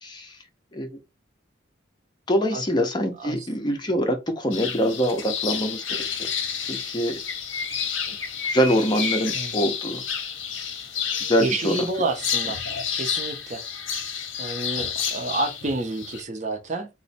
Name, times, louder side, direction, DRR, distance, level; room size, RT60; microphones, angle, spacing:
voice 1, 0.0-0.4 0.7-0.9 2.3-6.3 6.6-7.2 8.1-8.2 8.4-10.0 11.2-11.8 15.0-15.2, equal, 20° left, 0.5 m, -24 dB
sound 1, 4.5-16.2, left 7 dB, 70° left, 0.6 m, -30 dB
voice 2, 11.4-12.6 12.9-13.6 14.4-16.9, right 2 dB, 35° right, 0.6 m, -29 dB
3.0 x 2.1 x 4.1 m
head